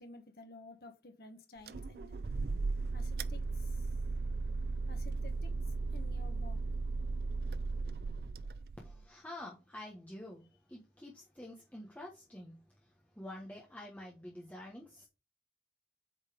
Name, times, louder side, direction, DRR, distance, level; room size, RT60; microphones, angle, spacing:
voice 1, 0.0-2.2 2.9-4.0 4.9-6.6, left 2 dB, 60° left, 1.3 m, -53 dB
sound 1, 1.7-9.0, right 3 dB, 60° right, 0.4 m, -36 dB
voice 2, 8.8-10.4 10.7-12.6 13.2-15.1, left 1 dB, 10° left, 1.2 m, -48 dB
8.2 x 4.1 x 5.0 m
head